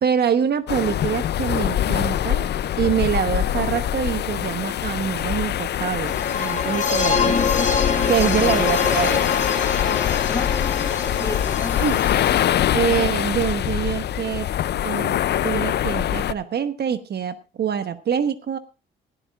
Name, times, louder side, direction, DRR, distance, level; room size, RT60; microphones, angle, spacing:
voice 1, 0.0-2.5 2.8-7.6 8.1-9.2 11.8-12.0 12.7-14.5 14.8-15.2 15.4-18.6, right 8 dB, 55° right, 10 dB, 1.1 m, -25 dB
sound 1, 0.7-16.3, left 11 dB, 60° left, 0.5 m, -24 dB
sound 2, 6.1-12.5, left 5 dB, 40° left, 2.0 m, -25 dB
voice 2, 8.0-8.8 10.3-11.9, left 2 dB, 15° left, 5 dB, 2.1 m, -33 dB
18.0 x 14.0 x 2.4 m, 0.31 s
cardioid pair, 90°, 20 cm